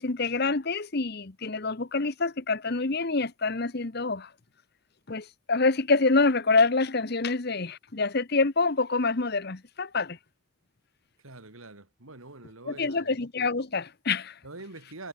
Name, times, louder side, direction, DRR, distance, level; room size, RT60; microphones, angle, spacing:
voice 1, 0.0-4.3 5.1-10.2 12.7-14.4, left 3 dB, 45° left, 1.0 m, -26 dB
voice 2, 11.2-13.2 14.4-15.1, right 2 dB, 75° right, 3.2 m, -45 dB
head